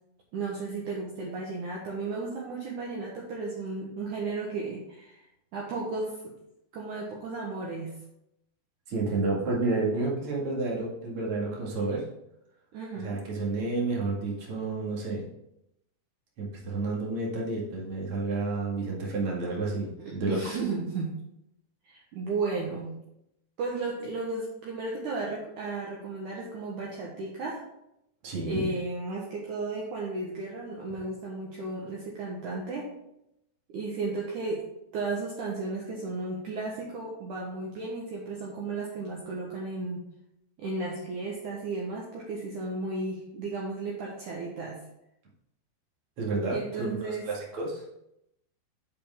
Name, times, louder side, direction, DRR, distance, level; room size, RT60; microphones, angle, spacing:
voice 1, 0.3-5.2 5.5-6.3 6.7-7.9 12.7-13.2 20.0-21.1 21.8-22.9 23.6-27.6 28.5-32.9 33.7-34.7 34.9-40.0 40.6-44.8 46.5-47.3, right 3 dB, 75° right, -3 dB, 1.8 m, -34 dB
voice 2, 8.9-12.0 13.0-15.2 16.4-20.4 28.2-28.7 46.2-47.9, right 3 dB, 45° right, -3 dB, 1.9 m, -30 dB
10.5 x 5.2 x 3.6 m, 0.81 s
omnidirectional pair, 5.3 m